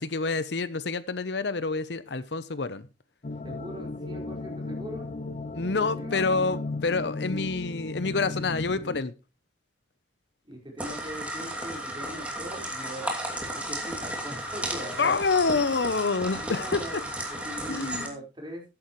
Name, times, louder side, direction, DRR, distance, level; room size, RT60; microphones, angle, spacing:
voice 1, 0.0-2.9 5.5-9.1 15.0-17.0 17.7-18.2, left 4 dB, 70° left, 0.8 m, -27 dB
sound 1, 3.2-9.0, left 3 dB, 40° left, 0.6 m, -35 dB
voice 2, 3.4-5.1 5.5-6.2 10.4-15.1 16.3-18.6, equal, 25° right, 4.8 m, -41 dB
sound 2, 10.8-18.1, right 1 dB, 5° right, 2.7 m, -34 dB
13.5 x 10.5 x 3.1 m
head